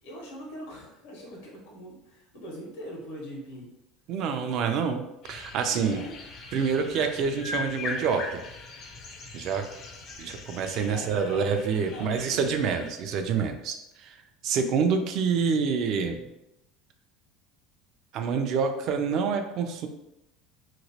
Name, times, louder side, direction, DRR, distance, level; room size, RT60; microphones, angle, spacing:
voice 1, 0.0-3.7 5.7-6.2 10.9-11.5 11.8-12.8, equal, 90° left, -2 dB, 1.3 m, -42 dB
voice 2, 4.1-5.0 5.3-6.0 6.5-8.4 9.3-9.6 10.2-14.1 14.4-16.3 18.1-19.9, right 6 dB, 45° right, 6 dB, 0.4 m, -27 dB
sound 1, 5.2-12.9, left 4 dB, 40° left, 0.5 m, -40 dB
3.0 x 2.9 x 2.8 m, 0.86 s
cardioid pair, 155°, 0 cm